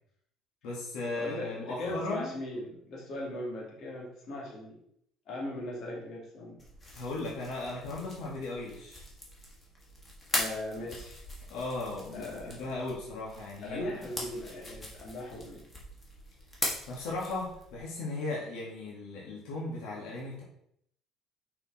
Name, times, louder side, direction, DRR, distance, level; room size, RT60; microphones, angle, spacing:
voice 1, 0.6-2.3 6.9-9.0 11.5-13.9 16.9-20.4, left 2 dB, 85° left, -4 dB, 2.1 m, -37 dB
voice 2, 1.2-4.8 5.3-6.6 10.3-11.1 12.1-12.6 13.6-15.6, left 1 dB, 55° left, -3 dB, 2.8 m, -39 dB
sound 1, 6.6-17.8, left 1 dB, 20° left, 2.1 m, -41 dB
6.3 x 5.6 x 4.3 m, 0.71 s
cardioid pair, 135°, 0 cm